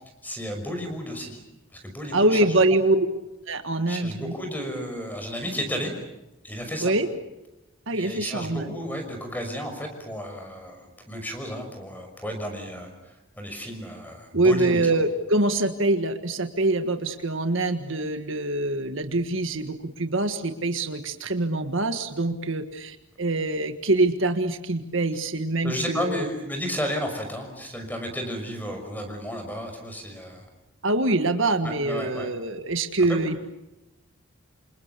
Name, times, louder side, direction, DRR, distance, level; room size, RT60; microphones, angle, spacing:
voice 1, 0.2-1.4 1.7-2.5 3.9-5.9 6.4-6.9 7.9-15.0 25.6-30.5 31.6-32.3 33.1-33.2, equal, 10° left, 5 dB, 5.9 m, -33 dB
voice 2, 2.1-3.0 3.5-4.3 6.8-7.1 7.9-8.7 14.3-26.3 30.8-33.4, right 2 dB, 60° right, 8 dB, 1.7 m, -24 dB
28.0 x 27.5 x 6.9 m, 0.98 s
head